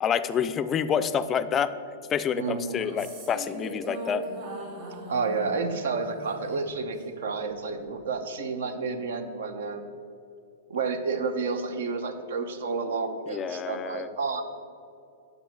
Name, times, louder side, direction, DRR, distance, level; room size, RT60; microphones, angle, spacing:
voice 1, 0.0-1.7 2.1-4.2 13.3-14.1, left 7 dB, 20° left, 12 dB, 0.3 m, -28 dB
voice 2, 2.4-2.8 5.1-9.9 10.7-14.4, right 4 dB, 80° right, 9 dB, 0.8 m, -30 dB
sound 1, 2.7-7.2, right 2 dB, 45° right, 1.9 m, -40 dB
6.2 x 5.3 x 6.8 m, 2.5 s
supercardioid pair, 145°, 0 cm